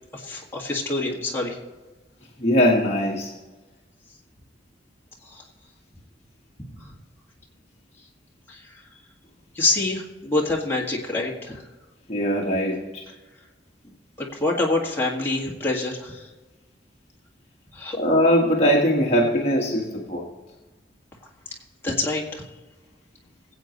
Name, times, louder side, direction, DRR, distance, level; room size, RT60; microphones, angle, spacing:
voice 1, 0.1-1.6 5.3-5.4 6.8-6.9 8.5-8.8 9.5-11.6 14.2-16.3 17.7-18.0 21.8-22.4, left 2 dB, 10° left, -3 dB, 1.9 m, -26 dB
voice 2, 2.4-3.3 12.1-13.0 18.0-20.3, equal, 35° left, -2 dB, 1.4 m, -21 dB
21.5 x 8.1 x 3.1 m, 1.2 s
head